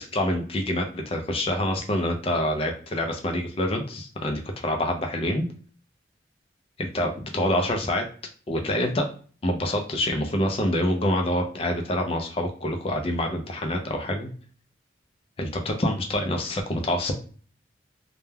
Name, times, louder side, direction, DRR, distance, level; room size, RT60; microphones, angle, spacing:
voice 1, 0.1-5.5 6.8-8.0 8.5-9.1 9.4-14.3 15.4-17.1, left 1 dB, 30° left, 3 dB, 0.4 m, -26 dB
2.2 x 2.1 x 3.2 m, 0.41 s
head